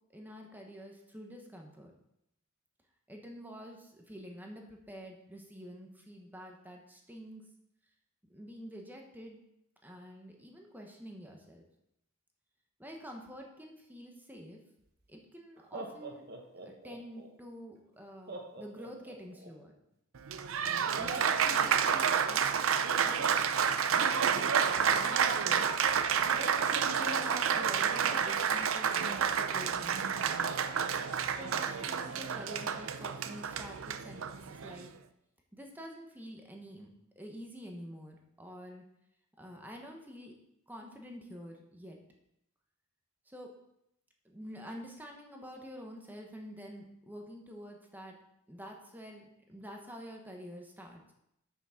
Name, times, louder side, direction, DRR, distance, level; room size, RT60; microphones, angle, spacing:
voice 1, 0.1-1.9 3.1-7.4 8.3-9.4 9.8-11.6 12.8-14.6 15.1-16.2 16.6-19.7 20.9-22.4 23.0-23.5 23.9-25.7 26.3-30.4 31.4-34.9 35.5-36.9 37.2-38.8 39.4-40.3 40.7-42.0 43.3-43.5 44.2-48.2 48.5-51.0, equal, 10° right, 1 dB, 1.1 m, -47 dB
Laughter, 14.8-14.9 15.6-17.3 18.3-19.5, right 2 dB, 50° right, 1.2 m, -45 dB
Applause, 20.2-34.9, right 7 dB, 75° right, 0.5 m, -30 dB
7.2 x 5.9 x 5.7 m, 0.80 s
head